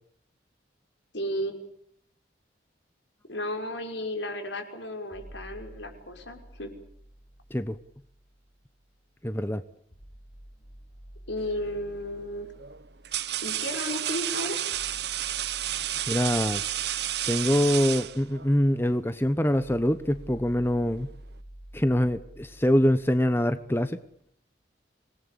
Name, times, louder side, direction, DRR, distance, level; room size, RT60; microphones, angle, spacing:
voice 1, 1.1-1.6 3.3-6.7 11.3-12.5 13.4-14.6, left 1 dB, 75° left, 6.0 m, -33 dB
sound 1, 5.1-9.1 9.9-23.9, right 1 dB, 40° left, 7.0 m, -50 dB
voice 2, 9.2-9.6 16.1-16.6 17.3-21.1 21.7-24.0, equal, 10° left, 1.0 m, -24 dB
sound 2, 11.5-11.8 12.6-18.6, right 12 dB, 60° right, 1.0 m, -31 dB
26.5 x 20.0 x 8.5 m
head